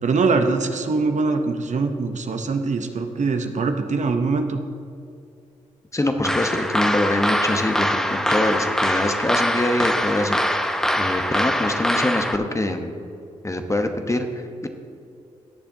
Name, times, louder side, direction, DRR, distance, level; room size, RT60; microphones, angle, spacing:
voice 1, 0.0-4.6, right 4 dB, 50° right, 6 dB, 0.9 m, -23 dB
voice 2, 5.9-10.4 11.0-12.9 13.4-14.7, left 1 dB, 20° left, 6 dB, 1.1 m, -24 dB
sound 1, 6.2-12.4, equal, 5° left, 0.8 m, -23 dB
18.5 x 6.8 x 2.8 m, 2.5 s
hypercardioid pair, 40°, 15 cm